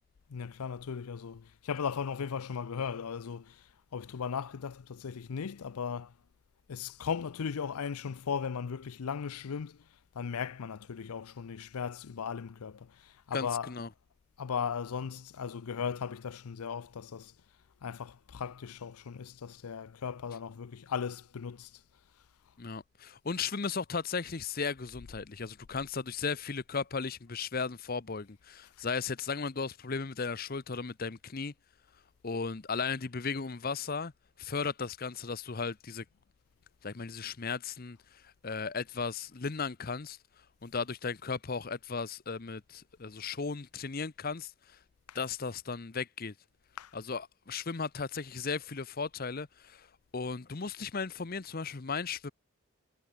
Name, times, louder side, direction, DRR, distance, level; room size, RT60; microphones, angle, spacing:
voice 1, 0.3-3.6 3.9-6.1 6.7-9.8 10.1-13.7 14.4-17.3 17.8-21.7 45.1-45.2 46.8-46.9, left 6 dB, 90° left, 0.5 m, -37 dB
voice 2, 13.3-13.9 22.6-31.5 32.2-34.1 34.4-36.0 36.8-40.2 40.6-44.8 45.1-46.3 46.9-49.9 50.1-52.3, left 5 dB, 40° left, 0.7 m, -36 dB
head